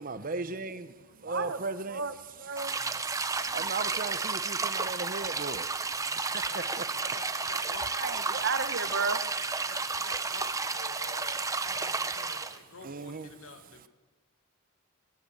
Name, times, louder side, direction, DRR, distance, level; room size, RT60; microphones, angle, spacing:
voice 1, 0.0-2.0 2.4-2.5 3.2-6.8 8.3-8.4 9.6-10.1 12.8-13.3 13.6-13.9, right 3 dB, 40° right, 1.0 m, -38 dB
voice 2, 1.3-1.6 1.9-2.1 2.4-2.6 7.9-9.2, right 5 dB, 55° right, 1.4 m, -32 dB
sound 1, 2.6-12.6, right 4 dB, 15° right, 0.7 m, -32 dB
voice 3, 3.4-4.2 6.4-7.9 8.2-8.4 9.6-13.9, left 4 dB, 70° left, 1.9 m, -48 dB
19.0 x 18.5 x 8.1 m
head